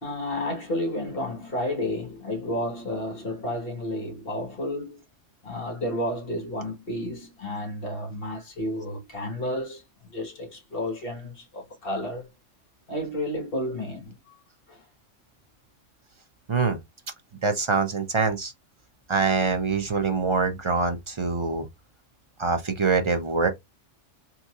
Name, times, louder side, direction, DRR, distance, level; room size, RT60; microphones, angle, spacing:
voice 1, 0.0-5.0 5.4-9.8 10.1-12.3 12.9-14.1 14.7-14.8, left 1 dB, 50° left, 1.5 m, -31 dB
voice 2, 17.4-18.5 19.1-21.7 22.4-23.5, right 4 dB, 35° right, 0.5 m, -24 dB
3.8 x 2.9 x 2.4 m
omnidirectional pair, 1.3 m